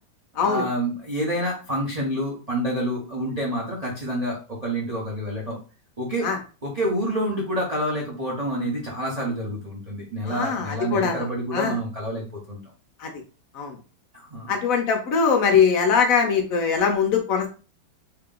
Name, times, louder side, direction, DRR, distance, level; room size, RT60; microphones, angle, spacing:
voice 1, 0.4-5.6 6.0-6.3 6.6-12.6 14.1-14.5, right 1 dB, 45° right, -4 dB, 0.5 m, -28 dB
voice 2, 10.3-11.3 11.5-11.7 13.0-13.1 13.5-13.8 14.5-17.5, left 6 dB, 70° left, 4 dB, 0.8 m, -21 dB
2.9 x 2.8 x 3.7 m, 0.35 s
omnidirectional pair, 2.1 m